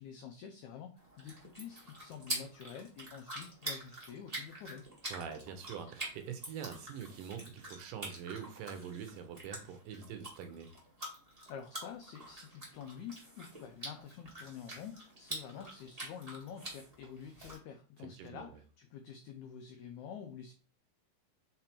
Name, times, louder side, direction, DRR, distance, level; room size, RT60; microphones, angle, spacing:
voice 1, 0.0-4.8 11.5-20.5, left 8 dB, 90° left, 6 dB, 1.6 m, -48 dB
sound 1, 1.0-17.6, right 1 dB, 30° right, 0.6 m, -46 dB
voice 2, 5.1-10.7 18.0-18.5, right 7 dB, 75° right, 7 dB, 2.2 m, -44 dB
5.8 x 3.7 x 4.3 m, 0.37 s
omnidirectional pair, 4.1 m